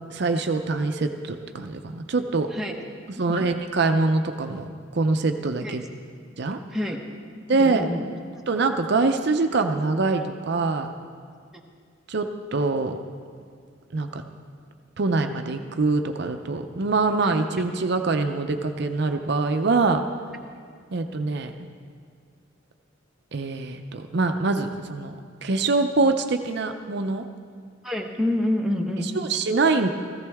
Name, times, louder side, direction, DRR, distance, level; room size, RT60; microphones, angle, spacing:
voice 1, 0.1-2.5 3.1-5.8 6.4-6.6 7.5-7.9 8.5-10.9 12.1-13.0 13.9-14.2 15.0-20.0 20.9-21.5 23.3-25.1 25.4-27.3 29.1-29.9, right 3 dB, 60° right, 6 dB, 0.6 m, -24 dB
voice 2, 7.6-8.0 17.2-17.3 27.8-29.1, left 1 dB, ahead, 0 dB, 1.0 m, -27 dB
17.0 x 14.5 x 3.5 m, 2.1 s
head